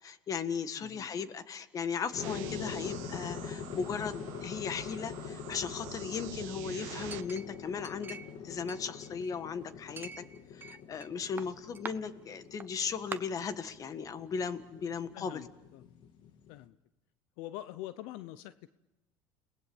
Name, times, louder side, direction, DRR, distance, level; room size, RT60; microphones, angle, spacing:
voice 1, 0.0-8.2 8.4-10.2 10.5-15.4, left 6 dB, 35° left, 12 dB, 1.6 m, -37 dB
voice 2, 0.8-1.1 15.1-15.9 16.5-16.8 17.4-18.7, left 14 dB, 75° left, 14 dB, 0.8 m, -45 dB
sound 1, 2.1-16.6, left 7 dB, 55° left, 2.2 m, -44 dB
sound 2, 2.2-7.2, right 14 dB, 80° right, 1.4 m, -46 dB
Chink clink, 7.1-8.4 8.7-9.5 10.0-11.1 11.4-11.9 12.6-12.7 13.1-13.2, right 5 dB, 20° right, 1.1 m, -44 dB
30.0 x 19.5 x 7.2 m, 1.0 s
supercardioid pair, 110°, 10 cm